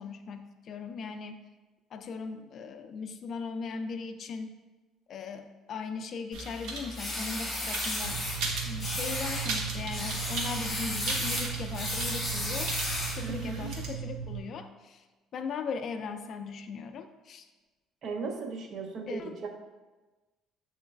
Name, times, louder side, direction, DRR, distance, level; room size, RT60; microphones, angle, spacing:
voice 1, 0.0-1.4 1.9-4.5 5.1-8.3 8.6-12.7 13.2-15.1 15.3-17.5 19.1-19.4, left 5 dB, 45° left, 8 dB, 0.3 m, -38 dB
sound 1, 6.3-13.9, right 2 dB, 80° right, 0.9 m, -38 dB
sound 2, 6.9-8.4 8.8-9.5 9.9-13.3, left 1 dB, 20° left, 1.4 m, -34 dB
sound 3, 8.0-14.4, right 9 dB, 10° right, 1.1 m, -38 dB
voice 2, 13.2-13.7 18.0-19.5, right 4 dB, 50° right, 3 dB, 0.6 m, -37 dB
7.3 x 3.1 x 2.3 m, 1.2 s
cardioid pair, 140°, 0 cm